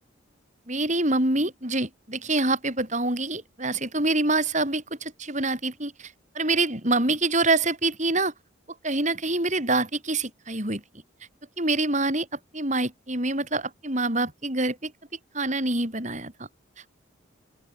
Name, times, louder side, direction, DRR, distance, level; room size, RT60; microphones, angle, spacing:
voice 1, 0.7-8.3 8.8-10.8 11.6-12.3 12.5-14.9 15.3-16.3, right 2 dB, 35° right, 7.4 m, -26 dB
open air
head